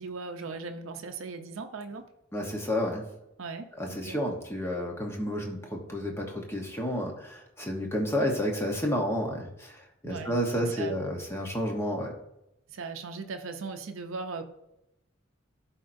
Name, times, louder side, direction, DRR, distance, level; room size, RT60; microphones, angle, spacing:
voice 1, 0.0-2.1 3.4-4.2 10.0-11.1 12.7-14.4, right 4 dB, 75° right, 5 dB, 0.6 m, -38 dB
voice 2, 2.3-3.1 3.8-12.1, equal, 10° left, 1 dB, 1.0 m, -31 dB
11.5 x 4.3 x 2.6 m, 0.87 s
head